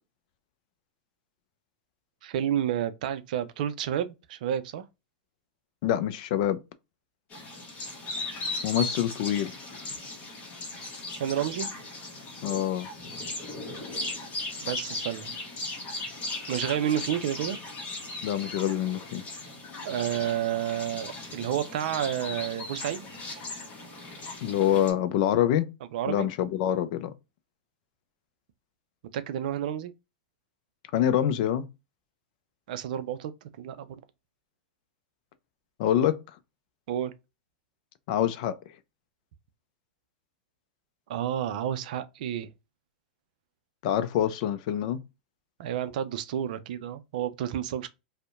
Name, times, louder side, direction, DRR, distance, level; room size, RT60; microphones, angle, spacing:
voice 1, 2.2-4.8 11.2-11.7 14.6-15.3 16.5-17.6 19.8-23.1 25.9-26.3 29.1-29.9 32.7-33.3 33.6-34.0 36.9-37.1 41.1-42.5 45.6-47.9, right 10 dB, 65° right, 0.4 m, -30 dB
voice 2, 5.8-6.6 8.6-9.5 12.4-12.9 18.2-19.2 24.4-25.7 26.1-27.1 30.9-31.6 35.8-36.2 38.1-38.6 43.8-45.0, left 11 dB, 55° left, 0.4 m, -25 dB
sound 1, 7.3-24.9, left 2 dB, 35° left, 1.0 m, -37 dB
2.6 x 2.1 x 2.3 m
hypercardioid pair, 105°, 5 cm